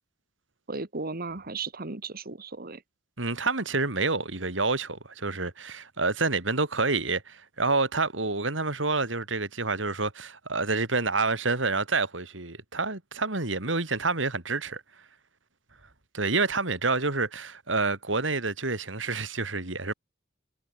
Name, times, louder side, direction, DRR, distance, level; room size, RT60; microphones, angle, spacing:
voice 1, 0.7-2.8, right 3 dB, 50° right, 1.8 m, -35 dB
voice 2, 3.2-14.8 16.1-19.9, right 3 dB, 75° right, 3.7 m, -28 dB
head